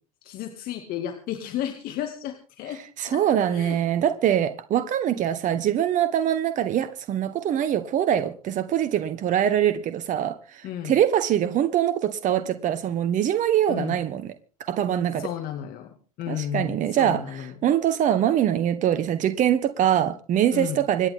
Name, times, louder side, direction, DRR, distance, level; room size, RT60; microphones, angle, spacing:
voice 1, 0.2-3.2 3.5-3.8 10.6-10.9 13.7-14.0 15.2-15.9 16.2-17.5 20.5-20.8, left 10 dB, 50° left, 2.4 m, -33 dB
voice 2, 3.0-14.3 14.7-15.3 16.3-21.1, right 10 dB, 40° right, 1.4 m, -23 dB
26.5 x 10.5 x 3.8 m
hypercardioid pair, 85°, 19 cm